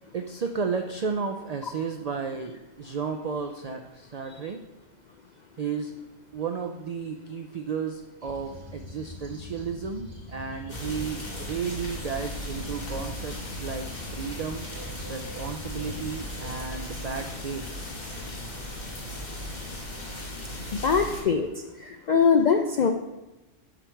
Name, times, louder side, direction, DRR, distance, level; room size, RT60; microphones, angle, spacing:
voice 1, 0.0-4.6 5.6-6.0 6.3-14.7 15.1-17.7, right 5 dB, 85° right, 5 dB, 0.3 m, -33 dB
sound 1, 8.2-16.6, equal, 25° right, 1.3 m, -43 dB
sound 2, 10.7-21.2, left 1 dB, 35° left, 1.5 m, -37 dB
voice 2, 20.8-22.9, left 6 dB, 70° left, 5 dB, 0.4 m, -22 dB
6.9 x 5.9 x 4.5 m, 1.1 s
omnidirectional pair, 1.3 m